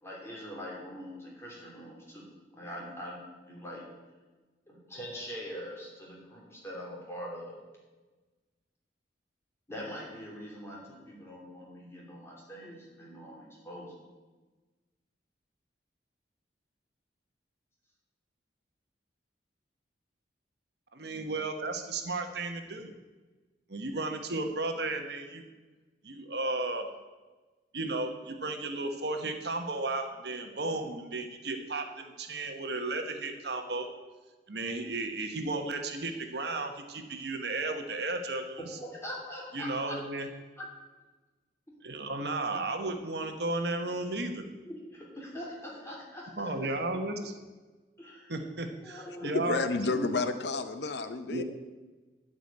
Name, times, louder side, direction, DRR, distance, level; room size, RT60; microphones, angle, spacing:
voice 1, 0.0-2.3 2.5-3.2 3.5-3.8 4.7-7.6 9.7-13.9 38.6-40.0 40.6-40.7 44.6-46.5 48.0-48.3 48.8-49.7, equal, 15° left, -4 dB, 3.0 m, -43 dB
voice 2, 20.9-22.9 23.7-25.4 26.0-26.9 27.7-33.9 34.5-38.6 39.5-40.3 41.8-44.4 46.4-47.3 48.3-49.6 49.9-50.1 51.3-51.4, right 2 dB, 65° right, 5 dB, 1.2 m, -34 dB
voice 3, 49.3-51.4, left 3 dB, 70° left, 10 dB, 0.6 m, -30 dB
12.0 x 5.1 x 8.5 m, 1.2 s
head